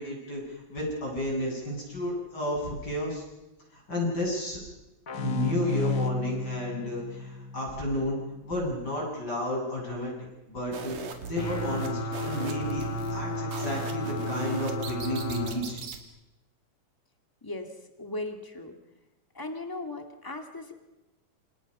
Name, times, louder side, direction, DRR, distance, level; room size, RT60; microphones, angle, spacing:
voice 1, 0.0-3.2 3.7-4.6 5.1-8.2 8.4-10.1 10.5-11.0 11.3-15.8, left 1 dB, 30° left, -2 dB, 8.4 m, -32 dB
sound 1, 5.1-8.5, left 3 dB, 55° left, 0.9 m, -33 dB
sound 2, 10.7-16.0, right 6 dB, 85° right, 3.6 m, -40 dB
sound 3, 11.4-15.5, left 1 dB, 70° left, 5.7 m, -33 dB
voice 2, 17.4-18.7 19.3-20.7, left 2 dB, 10° left, 4 dB, 1.7 m, -37 dB
28.0 x 27.0 x 5.6 m, 1.0 s
omnidirectional pair, 3.5 m